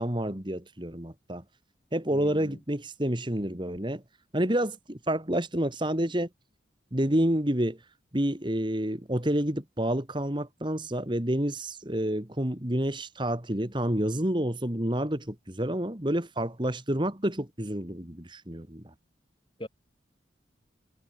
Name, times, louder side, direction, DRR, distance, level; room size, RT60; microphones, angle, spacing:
voice 1, 0.0-1.4 1.9-4.0 4.3-6.3 6.9-7.8 8.1-18.9, right 1 dB, 25° right, 2.1 m, -29 dB
voice 2, 2.1-2.6 19.6-19.7, equal, 25° left, 7.0 m, -41 dB
head